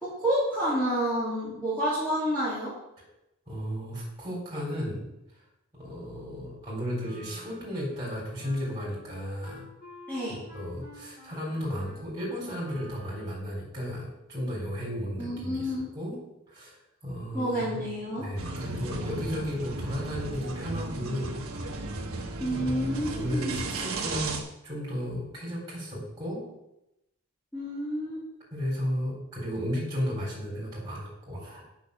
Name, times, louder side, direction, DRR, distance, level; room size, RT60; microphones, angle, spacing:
voice 1, 0.0-2.7 10.1-10.4 15.2-15.9 17.3-18.3 22.4-23.6 27.5-28.2, equal, 5° left, -10 dB, 2.8 m, -29 dB
voice 2, 3.5-5.1 5.8-9.7 10.3-16.2 16.5-16.8 17.0-17.8 18.2-21.4 22.5-26.5 28.5-31.6, equal, 15° right, -4 dB, 3.8 m, -34 dB
Wind instrument woodwind instrument, 7.0-13.6, equal, 40° left, 4.4 m, -50 dB
sound 1, 18.4-24.4, right 2 dB, 75° right, 1.4 m, -35 dB
8.4 x 6.1 x 6.6 m, 0.88 s
head